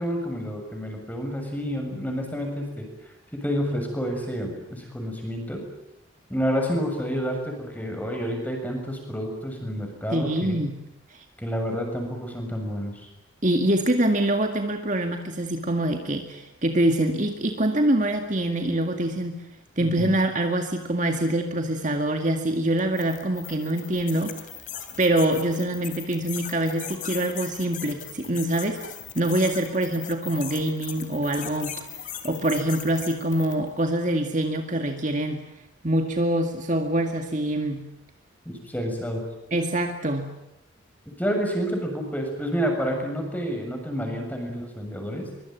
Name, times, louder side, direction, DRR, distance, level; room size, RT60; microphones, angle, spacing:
voice 1, 0.0-2.9 3.3-5.6 6.3-10.6 11.4-13.1 19.8-20.1 38.5-39.2 41.2-45.3, equal, 10° left, 3 dB, 7.0 m, -29 dB
voice 2, 10.1-10.8 11.1-11.2 13.4-19.4 19.8-24.4 25.0-28.8 29.1-31.9 32.2-35.4 35.8-37.8 39.5-40.3, right 1 dB, 40° right, 5 dB, 2.1 m, -25 dB
sound 1, 22.8-33.7, left 9 dB, 40° left, 3.2 m, -39 dB
24.0 x 23.5 x 9.3 m, 0.86 s
head